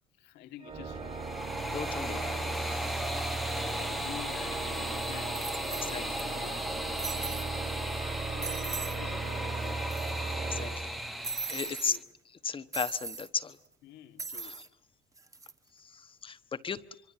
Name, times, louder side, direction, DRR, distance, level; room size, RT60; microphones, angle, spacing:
voice 1, 0.2-1.3 3.2-6.1 6.3-6.7 8.3-9.8 11.6-12.0 13.8-14.6, left 12 dB, 85° left, 2.3 m, -49 dB
Organ, 0.6-11.6, right 4 dB, 35° right, 3.2 m, -37 dB
sound 1, 0.9-12.0, equal, ahead, 1.1 m, -37 dB
voice 2, 1.7-2.7 5.8-6.3 10.5-11.0 11.5-12.0 12.4-13.6 14.4-14.7 15.8-16.8, left 6 dB, 30° left, 1.2 m, -36 dB
sound 2, 4.5-4.6 5.3-6.2 6.5-6.6 7.0-7.5 7.9-8.0 8.4-9.0 9.3-9.4 9.6-10.3 11.2-12.0 12.7-13.3 14.2-14.7 15.2-15.5, right 4 dB, 20° right, 1.4 m, -39 dB
25.0 x 24.0 x 8.7 m
cardioid pair, 110°, 17 cm